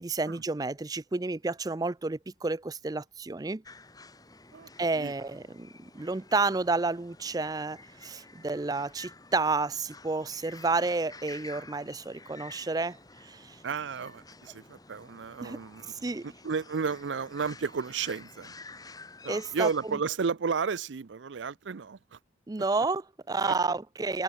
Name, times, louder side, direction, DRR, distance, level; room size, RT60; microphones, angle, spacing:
voice 1, 0.0-3.6 4.8-13.6 15.4-15.6 16.0-16.3 19.3-20.0 22.5-24.2, right 3 dB, 20° right, 0.5 m, -30 dB
sound 1, 3.6-20.0, left 3 dB, 20° left, 4.2 m, -51 dB
voice 2, 13.6-15.9 16.4-18.5 19.2-22.2 23.4-23.5, right 5 dB, 80° right, 0.5 m, -32 dB
head